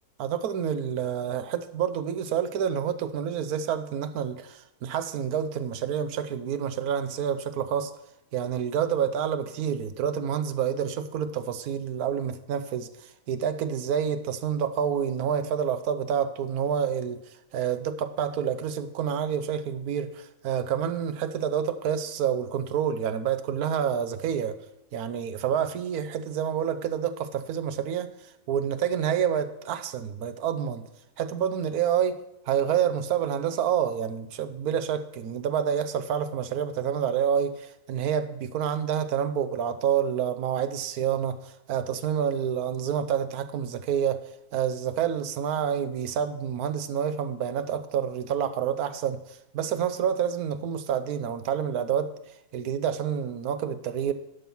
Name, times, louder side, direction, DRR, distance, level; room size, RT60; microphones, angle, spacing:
voice 1, 0.2-7.9 8.3-24.6 24.9-30.9 31.2-32.2 32.5-52.1 52.5-54.1, right 8 dB, 75° right, 1.2 m, -28 dB
11.5 x 5.5 x 6.0 m
omnidirectional pair, 1.6 m